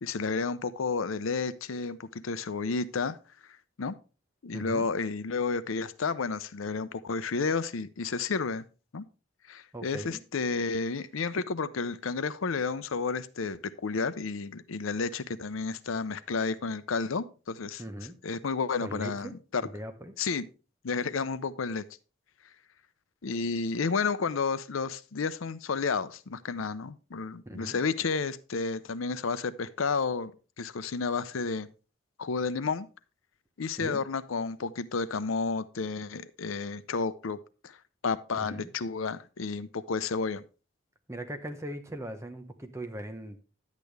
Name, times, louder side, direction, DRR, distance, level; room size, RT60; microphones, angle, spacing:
voice 1, 0.0-3.2 3.8-4.0 4.4-8.6 8.9-9.0 9.5-17.8 18.2-19.6 20.2-20.5 20.8-21.8 23.2-30.3 30.6-31.7 32.2-32.9 33.6-37.4 37.6-37.8 38.0-40.4, left 4 dB, 85° left, 15 dB, 0.6 m, -31 dB
voice 2, 4.5-4.9 9.7-10.2 17.8-18.1 18.8-19.3 19.6-20.1 27.5-27.8 33.8-34.0 38.3-38.7 41.1-43.4, right 1 dB, 15° right, 6 dB, 0.9 m, -39 dB
10.5 x 8.3 x 3.3 m, 0.33 s
head